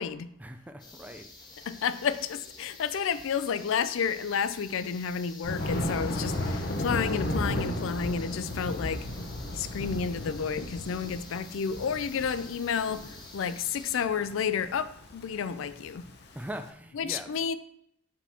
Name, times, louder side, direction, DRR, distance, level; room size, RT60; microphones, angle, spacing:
voice 1, 0.4-1.8 16.3-17.3, right 1 dB, 5° right, 0.3 m, -42 dB
sound 1, 0.8-14.0, left 3 dB, 20° left, 0.8 m, -49 dB
voice 2, 1.7-9.1 9.5-16.0 16.9-17.6, left 6 dB, 75° left, 0.3 m, -31 dB
Thunder, 5.4-16.5, left 1 dB, 50° left, 0.7 m, -34 dB
4.9 x 3.5 x 5.5 m
head